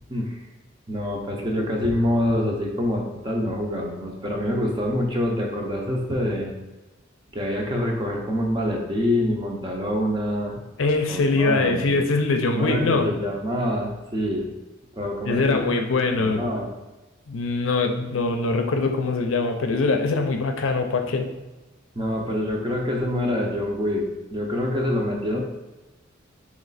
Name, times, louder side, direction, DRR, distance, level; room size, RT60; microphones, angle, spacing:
voice 1, 0.1-0.4 0.9-6.5 7.3-10.6 11.1-11.8 12.5-14.5 15.0-15.7 16.2-16.7 22.0-25.4, left 1 dB, 25° right, 0 dB, 0.6 m, -26 dB
voice 2, 10.8-13.1 15.2-16.5 17.3-21.3, left 3 dB, 75° left, 5 dB, 0.5 m, -23 dB
3.1 x 3.1 x 4.0 m, 1.1 s
head